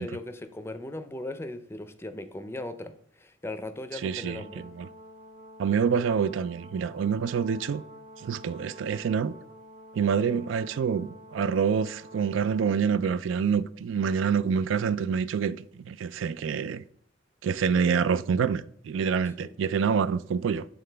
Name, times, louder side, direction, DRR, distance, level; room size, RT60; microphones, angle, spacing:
voice 1, 0.0-4.6 19.4-19.5, left 1 dB, 15° left, 0.5 m, -38 dB
voice 2, 3.9-4.9 5.6-7.8 8.2-9.3 9.9-16.8 17.4-20.7, right 6 dB, 85° right, 0.3 m, -27 dB
Brass instrument, 4.0-12.9, equal, 40° right, 0.9 m, -49 dB
8.7 x 3.8 x 3.3 m
head